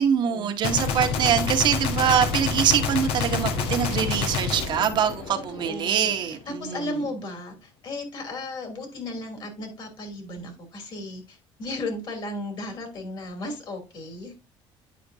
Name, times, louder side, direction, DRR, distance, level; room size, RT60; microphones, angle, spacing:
voice 1, 0.0-7.0, right 8 dB, 50° right, 1.0 m, -24 dB
Gunshot gunfire, 0.6-5.9, left 5 dB, 80° left, 1.0 m, -28 dB
voice 2, 5.3-14.3, left 2 dB, 50° left, 2.9 m, -35 dB
9.3 x 5.1 x 2.6 m
cardioid pair, 125°, 10 cm